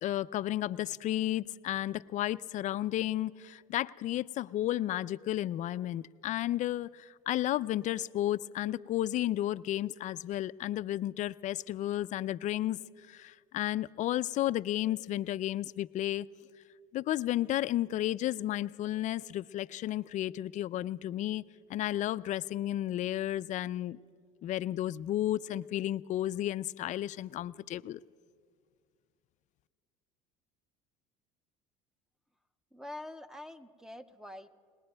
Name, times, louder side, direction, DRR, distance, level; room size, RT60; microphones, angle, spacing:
voice 1, 0.0-12.8 13.1-16.3 16.9-21.4 21.7-24.0 24.4-28.0, left 13 dB, 45° left, 17 dB, 0.4 m, -32 dB
voice 2, 32.7-34.5, left 1 dB, 5° right, 10 dB, 0.7 m, -45 dB
29.0 x 19.5 x 2.3 m, 2.1 s
supercardioid pair, 85°, 17 cm